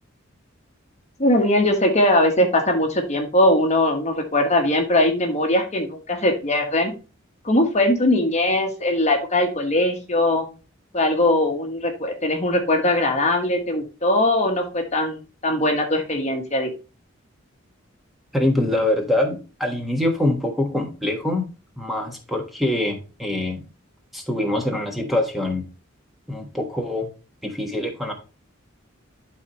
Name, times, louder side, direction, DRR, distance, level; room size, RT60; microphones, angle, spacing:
voice 1, 1.2-6.9 7.4-10.5 10.9-15.2 15.4-16.7, left 1 dB, 35° left, 4 dB, 1.3 m, -20 dB
voice 2, 18.3-21.5 21.8-23.6 24.1-25.6 26.3-27.1 27.4-28.1, left 1 dB, ahead, 1 dB, 1.3 m, -24 dB
12.0 x 4.1 x 3.0 m, 0.32 s
head